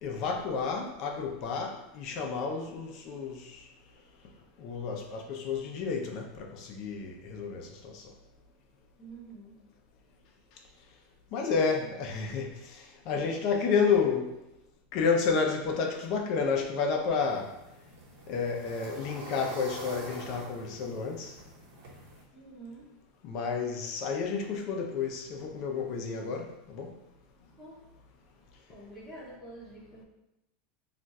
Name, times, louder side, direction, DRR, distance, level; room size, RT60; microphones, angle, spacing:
voice 1, 0.0-3.4 4.6-8.0 11.3-12.5 13.1-14.3 14.9-17.5 18.3-21.3 23.2-26.9, left 5 dB, 45° left, 2 dB, 0.5 m, -30 dB
voice 2, 9.0-9.5 11.3-11.9 22.3-22.9 27.6-27.8 28.7-30.0, right 2 dB, ahead, -8 dB, 0.8 m, -47 dB
sound 1, 17.2-22.2, right 2 dB, 70° right, 1.1 m, -45 dB
2.4 x 2.3 x 4.0 m, 0.90 s
supercardioid pair, 150°, 0 cm